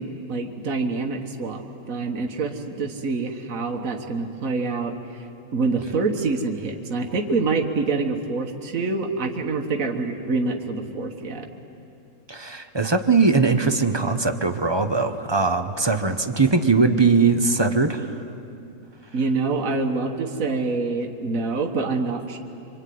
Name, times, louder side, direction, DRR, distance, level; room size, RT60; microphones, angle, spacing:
voice 1, 0.0-5.3 5.5-11.5 19.1-22.4, right 3 dB, 65° right, 3 dB, 1.9 m, -26 dB
voice 2, 12.3-18.2, right 4 dB, 20° right, 8 dB, 1.0 m, -20 dB
25.5 x 24.5 x 9.5 m, 2.6 s
omnidirectional pair, 1.5 m